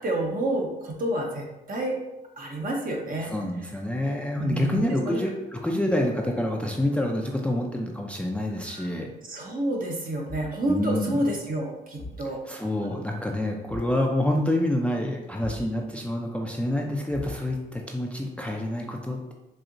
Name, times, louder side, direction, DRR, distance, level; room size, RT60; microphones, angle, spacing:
voice 1, 0.0-2.0 2.4-3.3 4.4-5.2 8.7-8.9 9.3-12.4 12.9-13.0, right 1 dB, 45° right, 0 dB, 0.9 m, -29 dB
voice 2, 3.3-9.1 10.7-11.2 12.5-19.3, left 1 dB, 5° left, 1 dB, 0.5 m, -27 dB
Thump thud, 10.3-10.7 12.0-12.3 13.7-14.0 15.4-15.8 17.1-17.7, left 2 dB, 70° left, 0.9 m, -40 dB
4.3 x 2.7 x 2.6 m, 0.97 s
supercardioid pair, 60°, 19 cm